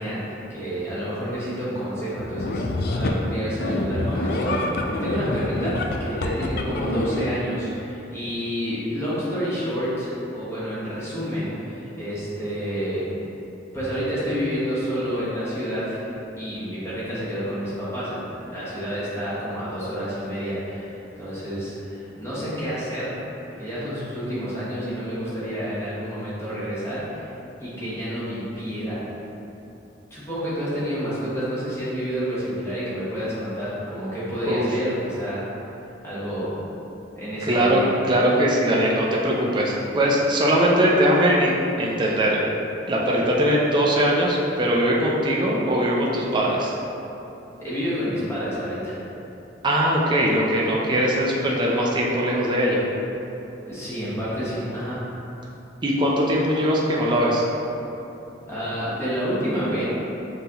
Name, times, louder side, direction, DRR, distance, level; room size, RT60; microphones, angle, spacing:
voice 1, 0.0-13.1 13.7-16.1 16.4-23.2 23.5-27.3 27.6-29.0 30.1-35.4 36.0-36.6 37.1-37.9 47.6-49.0 53.7-55.0 58.5-59.8, equal, 15° left, -10 dB, 1.0 m, -29 dB
sound 1, 2.2-3.2 3.6-7.3, left 2 dB, 55° left, 0.3 m, -26 dB
voice 2, 37.4-42.5 42.9-46.7 49.6-52.8 55.8-57.4, equal, 25° right, -4 dB, 0.4 m, -21 dB
5.5 x 2.6 x 2.8 m, 3.0 s
head